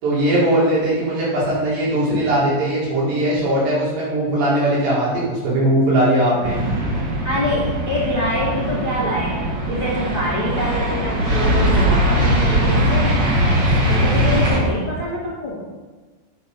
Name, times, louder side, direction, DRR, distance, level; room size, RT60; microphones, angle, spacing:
voice 1, 0.0-6.5, right 1 dB, 75° right, -7 dB, 6.6 m, -19 dB
sound 1, 6.4-14.6, equal, 60° right, 1.1 m, -20 dB
voice 2, 7.2-13.3 13.9-15.6, left 1 dB, 15° left, -6 dB, 2.4 m, -25 dB
11.0 x 9.2 x 5.6 m, 1.3 s
omnidirectional pair, 4.9 m